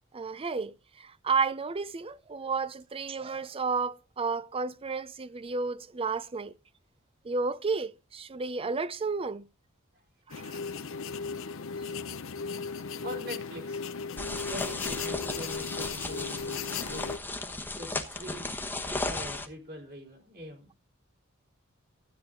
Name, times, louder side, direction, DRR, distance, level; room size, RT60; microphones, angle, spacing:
voice 1, 0.1-6.5 7.2-9.4 10.3-10.6, right 4 dB, 25° right, 0.5 m, -32 dB
sound 1, 10.3-17.2, left 5 dB, 70° left, 0.7 m, -36 dB
voice 2, 12.0-14.1 14.5-18.5 19.0-20.7, equal, 50° right, 3.8 m, -44 dB
sound 2, 14.2-19.5, left 2 dB, 10° left, 1.1 m, -35 dB
13.0 x 8.7 x 3.7 m
head